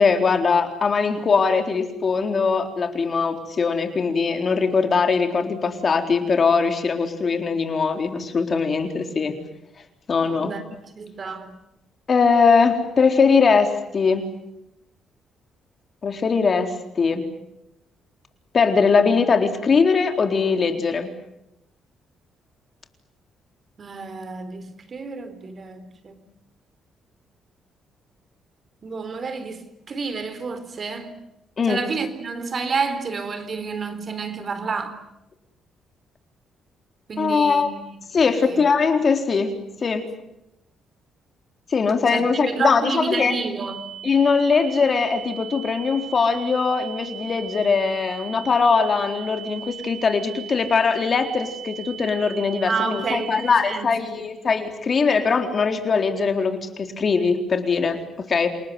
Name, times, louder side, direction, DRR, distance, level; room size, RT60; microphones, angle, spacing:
voice 1, 0.0-9.4 10.1-10.5 12.1-14.3 16.0-17.3 18.5-21.1 31.6-31.9 37.2-37.7 38.1-39.6 39.8-40.0 41.7-43.3 44.0-58.5, left 5 dB, 45° left, 4.0 m, -21 dB
voice 2, 10.9-11.6 23.8-26.2 28.8-31.2 31.7-35.0 37.1-38.6 42.1-43.9 52.7-54.2, right 4 dB, 45° right, 3.8 m, -30 dB
sound 1, 43.6-53.6, right 9 dB, 70° right, 7.1 m, -38 dB
28.0 x 19.0 x 9.5 m
cardioid pair, 90°, 0 cm